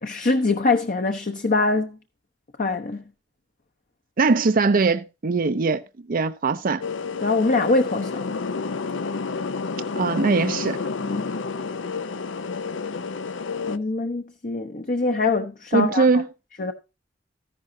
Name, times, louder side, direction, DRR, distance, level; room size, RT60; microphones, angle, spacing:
voice 1, 0.0-2.0 2.6-3.0 7.2-8.4 11.0-11.3 13.7-16.1 16.6-16.7, left 3 dB, 45° left, 0.9 m, -23 dB
voice 2, 4.2-5.8 6.1-6.8 10.0-10.8 15.7-16.2, right 4 dB, 50° right, 0.5 m, -21 dB
sound 1, 6.8-13.8, left 4 dB, 75° left, 0.6 m, -30 dB
14.0 x 11.0 x 2.7 m
head